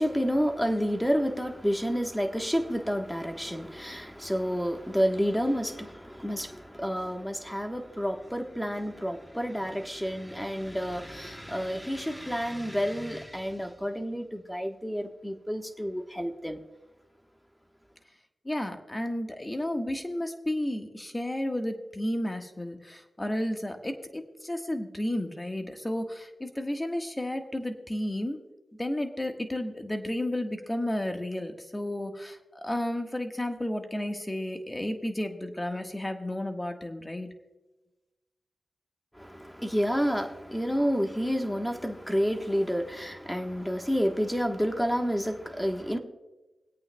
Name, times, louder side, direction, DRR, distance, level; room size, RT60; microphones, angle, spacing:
voice 1, 0.0-16.6 39.1-46.0, equal, 5° left, 1.2 m, -29 dB
voice 2, 18.4-28.4 28.8-37.3, left 1 dB, 20° left, 1.4 m, -32 dB
25.0 x 8.6 x 2.2 m
cardioid pair, 60°, 0 cm